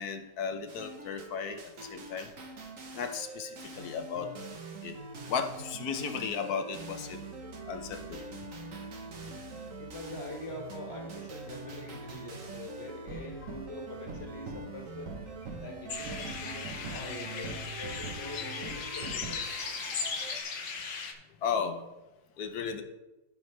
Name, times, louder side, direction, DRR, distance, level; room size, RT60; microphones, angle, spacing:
voice 1, 0.0-2.3 2.9-4.3 4.8-5.0 5.3-7.2 7.7-8.3 9.1-9.4 21.4-21.8 22.4-22.8, left 6 dB, 65° left, 7 dB, 1.3 m, -35 dB
sound 1, 0.7-20.4, right 3 dB, 55° right, 1.4 m, -43 dB
voice 2, 9.8-15.1 15.6-19.6, left 2 dB, 40° left, 1 dB, 1.7 m, -44 dB
sound 2, 15.9-21.1, left 5 dB, 80° left, 1.6 m, -37 dB
14.5 x 5.3 x 3.2 m, 1.0 s
omnidirectional pair, 1.8 m